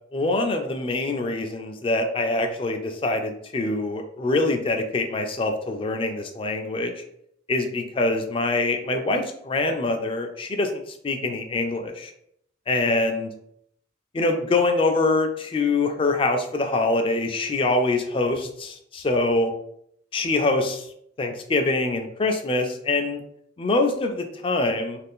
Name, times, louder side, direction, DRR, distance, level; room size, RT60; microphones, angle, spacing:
voice 1, 0.1-6.9 7.5-12.1 12.7-13.3 14.1-19.5 20.1-20.9 21.2-23.2 23.6-25.0, left 2 dB, 25° left, 5 dB, 0.3 m, -24 dB
2.5 x 2.3 x 3.5 m, 0.71 s
head